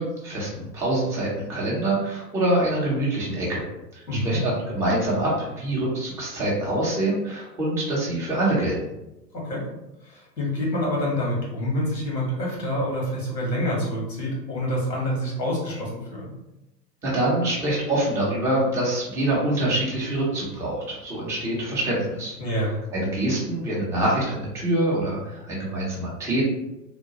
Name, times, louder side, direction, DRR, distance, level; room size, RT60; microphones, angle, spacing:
voice 1, 0.0-3.6 3.9-8.7 17.0-22.3 22.9-26.4, right 1 dB, 5° right, -6 dB, 0.4 m, -25 dB
voice 2, 4.1-4.4 9.4-9.7 10.0-16.3 22.4-22.7, equal, 80° left, -3 dB, 1.3 m, -27 dB
2.8 x 2.2 x 2.8 m, 0.94 s
figure-of-eight pair, 95°, 50 cm